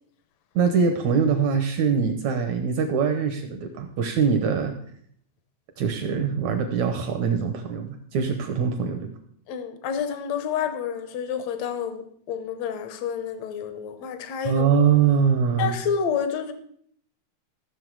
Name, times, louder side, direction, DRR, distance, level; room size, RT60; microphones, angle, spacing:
voice 1, 0.6-4.8 5.8-9.1 14.5-15.7, right 6 dB, 80° right, 6 dB, 1.6 m, -23 dB
voice 2, 9.5-14.7 15.6-16.5, left 7 dB, 80° left, 9 dB, 1.6 m, -29 dB
14.5 x 6.6 x 4.7 m, 0.64 s
omnidirectional pair, 4.3 m